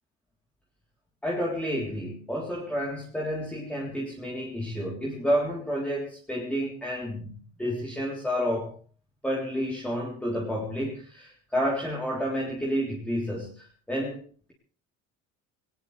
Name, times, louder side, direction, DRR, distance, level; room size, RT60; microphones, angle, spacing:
voice 1, 1.2-8.7 9.2-14.2, equal, 5° left, -4 dB, 3.8 m, -30 dB
21.0 x 19.5 x 3.4 m, 0.41 s
cardioid pair, 135°, 31 cm